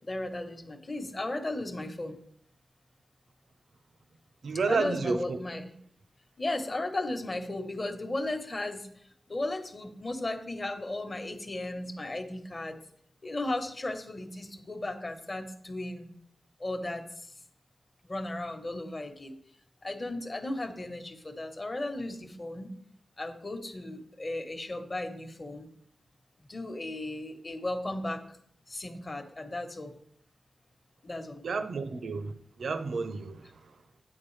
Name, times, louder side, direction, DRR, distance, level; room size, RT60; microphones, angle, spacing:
voice 1, 0.0-2.2 4.7-5.7 6.4-8.9 9.3-12.8 13.2-16.1 16.6-17.0 18.0-19.4 19.8-22.7 23.2-25.7 26.5-28.4 28.7-29.9 31.0-31.4, left 2 dB, 30° left, 1.1 m, -35 dB
voice 2, 4.4-5.4 31.4-33.5, right 4 dB, 70° right, 0.7 m, -31 dB
9.3 x 8.8 x 3.2 m
wide cardioid pair, 155°, 0 cm